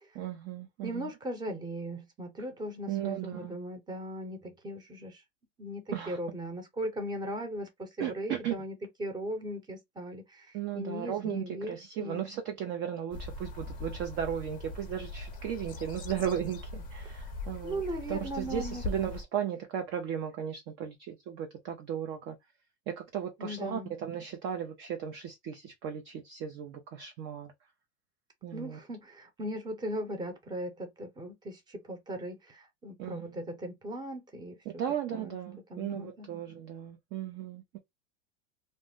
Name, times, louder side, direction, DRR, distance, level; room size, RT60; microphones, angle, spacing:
voice 1, 0.1-1.1 2.9-3.5 5.9-6.2 8.0-8.5 10.5-17.8 18.1-22.4 22.9-27.5 28.4-28.8 33.0-33.4 34.8-37.8, right 9 dB, 30° right, 0.4 m, -36 dB
voice 2, 0.8-5.2 5.6-12.2 17.6-18.8 23.4-23.9 28.5-34.6 35.1-35.4 35.7-36.3, equal, 10° right, 0.8 m, -38 dB
sound 1, 13.1-19.2, left 2 dB, 20° left, 0.6 m, -40 dB
2.6 x 2.0 x 3.4 m
supercardioid pair, 130°, 38 cm